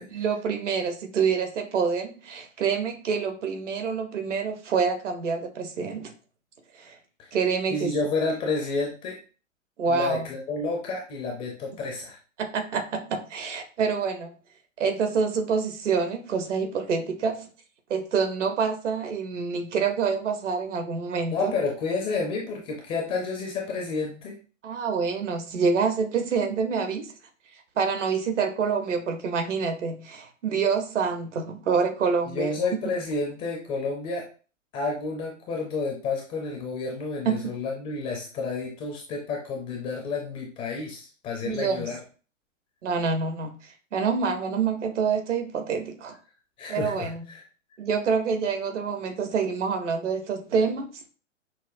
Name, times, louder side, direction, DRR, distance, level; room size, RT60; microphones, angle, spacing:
voice 1, 0.1-6.1 6.8-7.0 7.3-7.9 9.8-10.3 12.4-14.3 14.8-17.5 17.9-21.5 24.6-27.1 27.8-32.5 37.2-37.4 41.4-41.9 42.8-43.5 43.9-46.1 46.7-47.2 47.8-50.9, right 5 dB, 65° right, 6 dB, 0.9 m, -27 dB
voice 2, 7.7-9.2 9.9-12.2 21.3-24.4 32.3-34.2 34.7-42.0 46.6-47.4, left 3 dB, 15° left, 0 dB, 0.4 m, -30 dB
5.7 x 2.1 x 2.5 m, 0.37 s
figure-of-eight pair, 110°, 39 cm